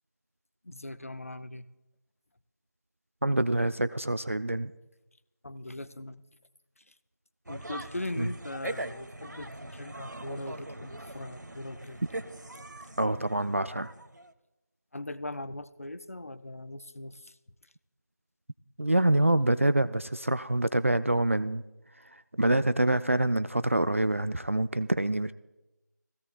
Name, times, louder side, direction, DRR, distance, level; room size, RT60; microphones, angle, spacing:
voice 1, 0.6-1.7 5.4-6.2 6.8-6.9 7.5-12.1 14.9-17.4 17.6-17.7, left 1 dB, 50° left, 13 dB, 0.6 m, -40 dB
voice 2, 3.2-4.7 8.2-8.3 13.0-13.9 18.8-21.6 22.1-25.3, right 1 dB, 45° right, 13 dB, 0.4 m, -26 dB
sound 1, 7.5-14.3, right 1 dB, 70° right, 1.1 m, -41 dB
20.5 x 16.5 x 2.3 m, 0.99 s
figure-of-eight pair, 175°, 10 cm